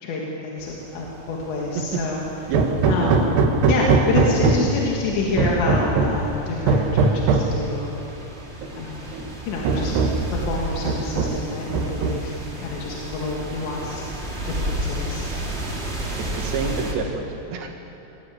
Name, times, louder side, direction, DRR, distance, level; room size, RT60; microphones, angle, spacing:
voice 1, 0.0-2.2 2.9-3.3 3.7-7.9 8.8-9.0 9.5-9.9 10.3-12.4 12.6-14.1 14.5-15.2, left 3 dB, 85° left, -2 dB, 4.2 m, -27 dB
sound 1, 0.6-16.9, right 1 dB, 20° right, 1.7 m, -33 dB
Hammer, 2.5-4.8 5.4-6.3 6.7-7.6 8.6-8.7 9.1-9.2 9.6-10.3 10.9-11.5 11.7-12.4, right 4 dB, 65° right, 2.8 m, -20 dB
voice 2, 16.2-17.7, right 5 dB, 80° right, 3 dB, 4.0 m, -28 dB
22.0 x 15.5 x 8.6 m, 3.0 s
omnidirectional pair, 5.0 m